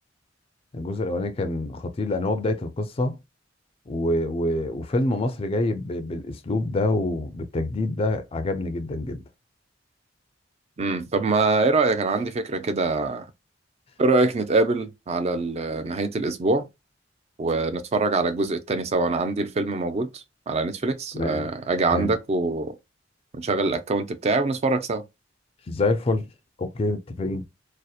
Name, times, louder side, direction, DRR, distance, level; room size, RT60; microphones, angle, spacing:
voice 1, 0.7-3.2 3.9-9.2 21.1-21.4 21.9-22.1 25.7-26.3 26.6-27.4, left 2 dB, 30° left, 0.4 m, -26 dB
voice 2, 10.8-13.3 14.0-16.7 17.4-22.7 23.3-25.0, right 3 dB, 35° right, 0.4 m, -24 dB
2.7 x 2.0 x 2.3 m
head